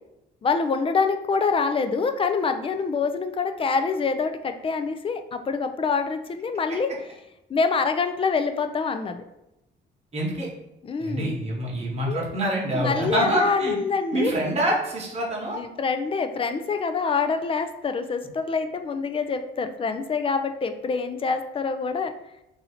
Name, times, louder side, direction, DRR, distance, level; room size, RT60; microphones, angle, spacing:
voice 1, 0.4-6.9 7.5-9.2 10.8-11.3 12.1-12.3 12.7-14.3 15.5-22.1, left 5 dB, 30° left, 8 dB, 0.3 m, -26 dB
voice 2, 10.1-10.5 11.0-13.8 14.1-15.6, right 1 dB, 30° right, -2 dB, 1.1 m, -26 dB
2.7 x 2.7 x 4.2 m, 0.89 s
cardioid pair, 90°, 20 cm